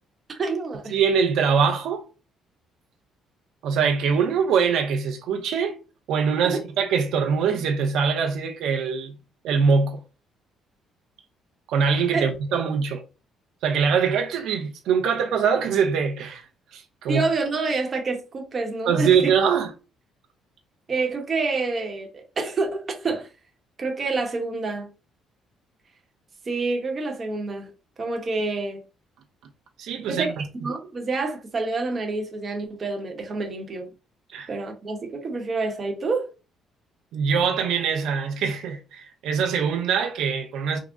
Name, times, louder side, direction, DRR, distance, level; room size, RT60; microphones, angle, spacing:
voice 1, 0.3-1.0 6.5-6.6 12.1-12.2 17.1-19.3 20.9-23.3 23.8-24.9 26.5-27.7 28.0-28.8 30.1-30.3 30.6-33.9 34.5-36.3, right 3 dB, 30° right, 0.9 m, -27 dB
voice 2, 0.9-2.0 3.6-5.8 6.1-9.1 9.4-10.0 11.7-13.0 13.6-16.4 16.7-17.2 18.9-19.7 29.8-30.4 34.3-34.5 37.1-40.8, right 6 dB, 75° right, 0.6 m, -23 dB
3.7 x 2.0 x 3.6 m
cardioid pair, 125°, 0 cm